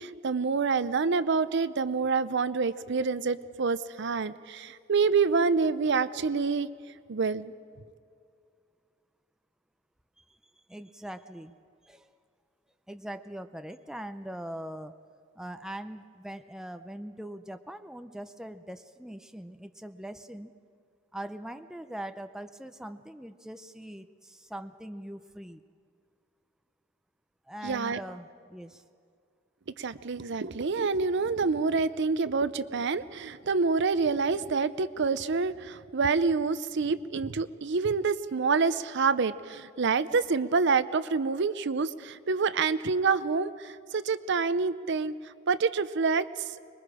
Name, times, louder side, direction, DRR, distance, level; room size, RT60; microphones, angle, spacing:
voice 1, 0.0-6.7 7.1-7.5 27.6-28.0 29.8-46.5, right 4 dB, 60° right, 14 dB, 0.6 m, -27 dB
voice 2, 10.7-11.6 11.8-12.1 12.9-15.0 15.4-20.6 21.1-25.6 27.5-28.8, right 1 dB, 5° right, 8 dB, 0.5 m, -41 dB
25.0 x 21.5 x 4.9 m, 2.3 s
head